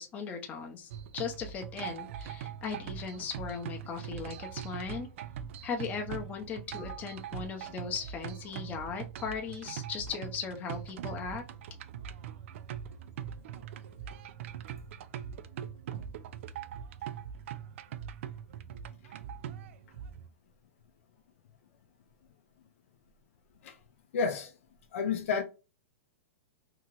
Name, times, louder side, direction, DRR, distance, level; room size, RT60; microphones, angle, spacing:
voice 1, 0.0-5.1 5.6-11.4, left 6 dB, 20° left, 0.6 m, -38 dB
sound 1, 0.9-20.3, right 9 dB, 65° right, 0.3 m, -42 dB
voice 2, 24.1-24.5 24.9-25.4, left 5 dB, 70° left, 0.5 m, -30 dB
2.8 x 2.4 x 2.9 m
hypercardioid pair, 150°, 8 cm